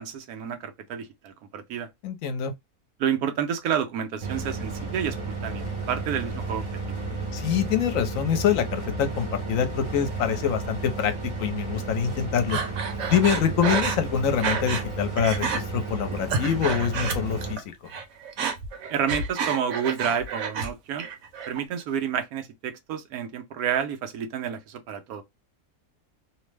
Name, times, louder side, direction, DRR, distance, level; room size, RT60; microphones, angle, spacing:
voice 1, 0.0-1.9 3.0-7.0 18.9-21.1 21.5-25.2, right 8 dB, 85° right, 1.1 m, -30 dB
voice 2, 2.0-2.5 7.3-11.1 11.4-12.6 13.1-17.7, left 8 dB, 70° left, 1.0 m, -25 dB
sound 1, 4.2-17.6, right 3 dB, 30° right, 0.5 m, -33 dB
Breathing, 12.5-14.9 15.2-15.6 16.1-17.6 17.9-20.7 21.0-21.6, right 5 dB, 70° right, 1.1 m, -29 dB
2.9 x 2.0 x 3.2 m
omnidirectional pair, 1.5 m